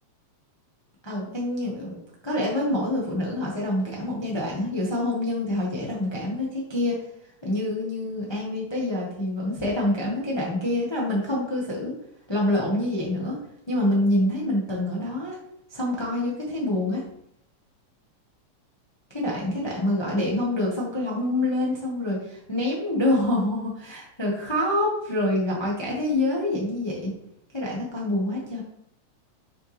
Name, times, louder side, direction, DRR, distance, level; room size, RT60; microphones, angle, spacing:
voice 1, 1.0-1.9 2.2-6.9 7.4-11.9 12.3-13.4 13.7-15.4 15.7-17.0 19.1-27.1 27.5-28.6, left 1 dB, 30° left, -3 dB, 0.4 m, -26 dB
6.7 x 5.6 x 3.5 m, 0.76 s
omnidirectional pair, 3.3 m